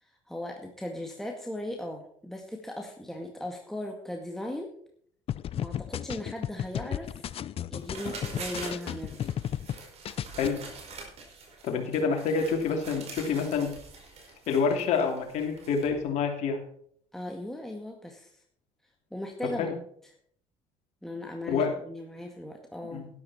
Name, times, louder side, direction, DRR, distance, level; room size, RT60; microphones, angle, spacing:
voice 1, 0.0-4.7 5.6-7.3 7.7-9.2 17.1-18.4 19.1-19.7 21.0-23.1, left 1 dB, 5° left, 1 dB, 2.0 m, -38 dB
sound 1, 5.3-9.8 10.0-10.5, left 10 dB, 50° left, 0.6 m, -34 dB
sound 2, 7.8-16.0, right 4 dB, 55° right, 5.1 m, -44 dB
voice 2, 11.6-13.7 14.5-16.6 19.6-19.7 21.5-21.7 22.9-23.1, left 5 dB, 65° left, 2 dB, 3.1 m, -27 dB
12.0 x 12.0 x 4.3 m, 0.64 s
hypercardioid pair, 65°, 13 cm